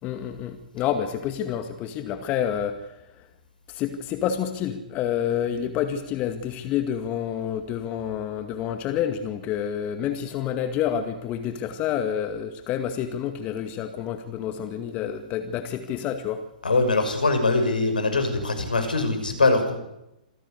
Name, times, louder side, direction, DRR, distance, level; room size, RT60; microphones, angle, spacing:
voice 1, 0.0-3.0 3.7-16.4, left 9 dB, 30° left, 7 dB, 2.1 m, -28 dB
voice 2, 16.6-19.8, left 3 dB, 80° left, 7 dB, 6.1 m, -22 dB
27.0 x 16.5 x 8.2 m, 0.89 s
figure-of-eight pair, 115°, 5 cm